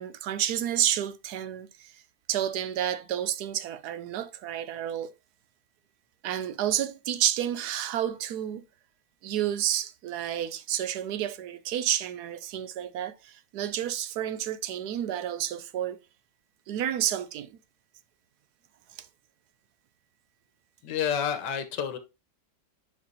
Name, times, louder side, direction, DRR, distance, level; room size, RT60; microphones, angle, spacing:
voice 1, 0.0-2.0 2.3-5.1 6.2-8.6 9.2-16.0 16.7-17.6 19.0-19.1, right 11 dB, 75° right, 1.1 m, -30 dB
voice 2, 20.8-22.0, left 8 dB, 85° left, 1.6 m, -29 dB
9.8 x 4.8 x 2.7 m
omnidirectional pair, 1.8 m